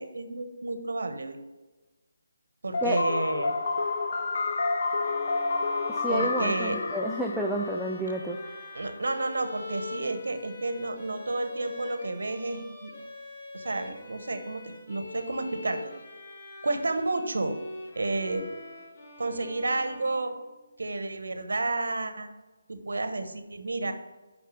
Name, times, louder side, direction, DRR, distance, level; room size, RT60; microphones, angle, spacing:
voice 1, 0.0-1.4 2.6-3.5 6.1-6.9 8.7-12.9 13.5-15.8 16.6-17.6 17.9-18.5 19.2-20.4 20.8-22.3 22.7-23.9, right 2 dB, 80° right, 8 dB, 1.0 m, -31 dB
sound 1, 2.7-8.6, left 3 dB, 45° left, 0.6 m, -30 dB
sound 2, 5.0-20.7, left 1 dB, 30° left, 1.2 m, -43 dB
voice 2, 5.9-8.4, right 1 dB, ahead, -1 dB, 0.3 m, -30 dB
6.3 x 5.7 x 5.2 m, 1.2 s
figure-of-eight pair, 165°, 0 cm